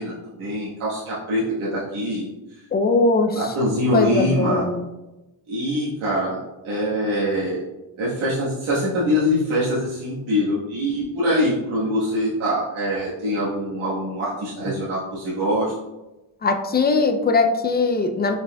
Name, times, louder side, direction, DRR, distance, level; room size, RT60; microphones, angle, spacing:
voice 1, 0.0-2.6 3.3-4.6 5.5-6.4 6.6-7.6 8.0-15.7, equal, 90° right, -8 dB, 1.4 m, -24 dB
voice 2, 2.7-3.4 3.9-4.9 16.4-18.4, left 3 dB, 25° left, 6 dB, 0.3 m, -20 dB
5.4 x 4.3 x 2.2 m, 1.0 s
wide cardioid pair, 130°, 47 cm